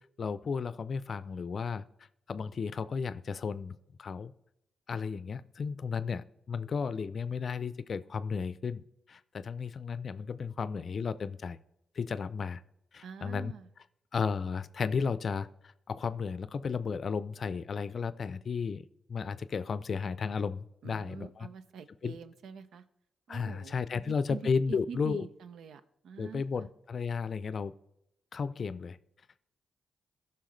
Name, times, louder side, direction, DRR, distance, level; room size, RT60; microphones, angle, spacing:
voice 1, 0.2-1.8 2.3-4.3 4.9-11.6 12.0-12.6 12.9-13.5 14.1-21.5 22.0-22.2 23.3-25.3 26.2-27.7 28.3-29.0, left 5 dB, 55° left, 15 dB, 0.5 m, -34 dB
voice 2, 13.0-13.6 20.8-22.8 23.3-24.4 24.7-26.7, right 6 dB, 75° right, 12 dB, 0.6 m, -45 dB
14.5 x 5.8 x 3.2 m, 0.80 s
supercardioid pair, 45°, 0 cm